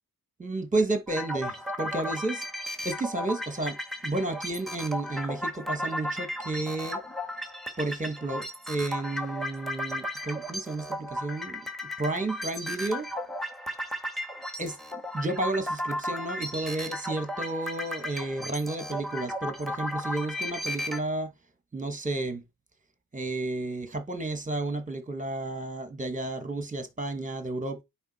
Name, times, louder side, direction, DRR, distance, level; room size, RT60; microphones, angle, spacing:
voice 1, 0.4-2.4 2.8-7.0 7.8-11.6 12.0-13.1 14.6-14.8 15.1-21.3 21.7-22.4 23.1-27.8, right 2 dB, 20° right, 1.4 m, -32 dB
sound 1, 1.1-21.0, equal, ahead, 1.7 m, -35 dB
9.5 x 3.6 x 4.2 m
wide cardioid pair, 80°, 38 cm